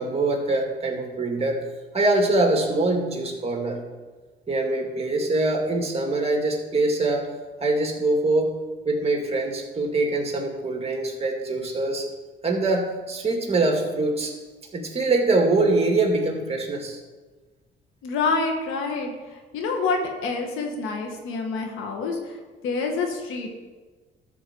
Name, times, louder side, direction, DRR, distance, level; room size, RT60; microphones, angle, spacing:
voice 1, 0.0-1.6 1.9-3.8 4.5-7.3 7.6-8.6 8.9-12.1 12.4-14.3 14.7-17.0, right 2 dB, 30° right, 2 dB, 2.3 m, -23 dB
voice 2, 18.0-23.5, left 4 dB, 90° left, 3 dB, 1.7 m, -27 dB
13.0 x 4.7 x 6.9 m, 1.3 s
cardioid pair, 90°, 20 cm